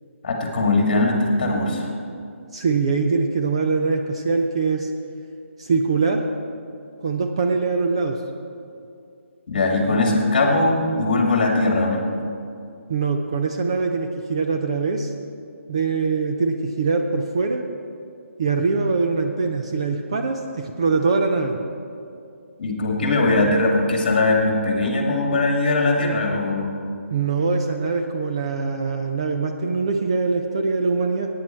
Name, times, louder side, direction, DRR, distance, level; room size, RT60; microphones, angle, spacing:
voice 1, 0.2-1.9 9.5-12.0 22.6-26.7, left 2 dB, 35° left, 1 dB, 2.0 m, -20 dB
voice 2, 2.5-4.9 5.6-6.2 7.0-8.2 12.9-15.1 15.7-17.6 18.4-21.6 27.1-31.3, right 4 dB, 25° right, 4 dB, 0.4 m, -23 dB
16.5 x 9.4 x 4.4 m, 2.5 s
hypercardioid pair, 175°, 7 cm